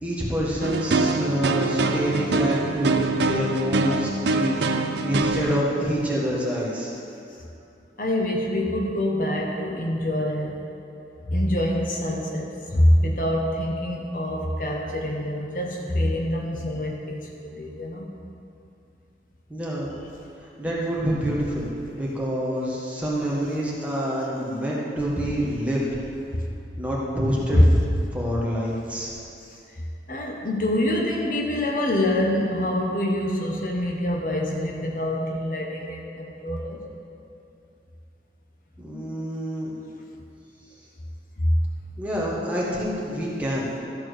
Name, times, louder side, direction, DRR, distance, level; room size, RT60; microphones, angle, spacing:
voice 1, 0.0-4.6 5.0-6.9 19.5-19.9 20.6-25.9 26.8-27.6 28.1-29.1 38.8-39.7 42.0-43.7, equal, 10° right, -6 dB, 1.5 m, -27 dB
sound 1, 0.6-5.6, right 3 dB, 80° right, 0.5 m, -24 dB
voice 2, 8.0-10.6 11.3-18.1 27.5-27.6 30.1-36.8 41.4-41.5, left 1 dB, 50° left, -1 dB, 1.0 m, -25 dB
13.5 x 4.5 x 6.3 m, 2.7 s
head